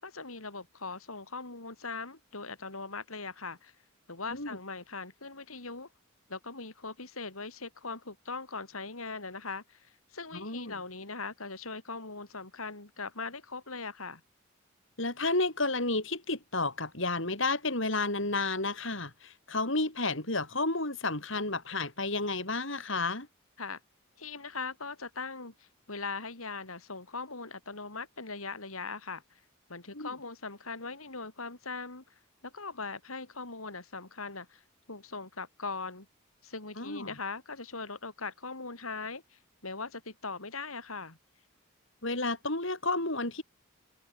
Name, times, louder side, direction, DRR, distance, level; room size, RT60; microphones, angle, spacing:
voice 1, 0.0-3.7 4.1-5.9 6.3-14.2 23.6-23.8 24.2-29.4 29.7-36.0 36.4-41.2, left 4 dB, 90° left, 5.0 m, -40 dB
voice 2, 10.3-10.7 15.0-23.3 29.9-30.1 36.8-37.1 42.0-43.4, left 2 dB, 60° left, 7.3 m, -31 dB
head